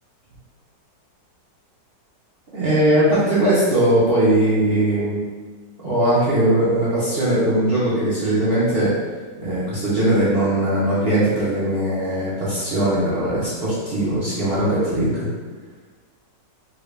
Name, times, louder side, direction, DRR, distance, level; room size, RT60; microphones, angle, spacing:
voice 1, 2.5-5.2 5.8-8.9 9.4-15.3, right 1 dB, 55° right, -10 dB, 0.7 m, -20 dB
2.9 x 2.6 x 3.2 m, 1.4 s
omnidirectional pair, 1.9 m